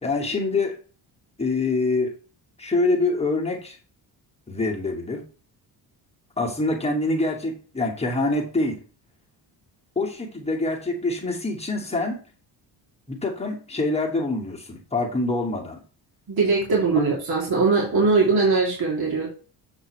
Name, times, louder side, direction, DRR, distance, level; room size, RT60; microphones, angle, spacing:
voice 1, 0.0-0.8 1.4-2.2 2.6-3.8 4.5-5.2 6.4-8.8 10.0-12.2 13.1-15.8 16.9-17.0, left 2 dB, 15° left, 2.3 m, -25 dB
voice 2, 16.3-19.3, right 4 dB, 55° right, 3.0 m, -21 dB
7.8 x 5.9 x 3.2 m
cardioid pair, 95°, 45 cm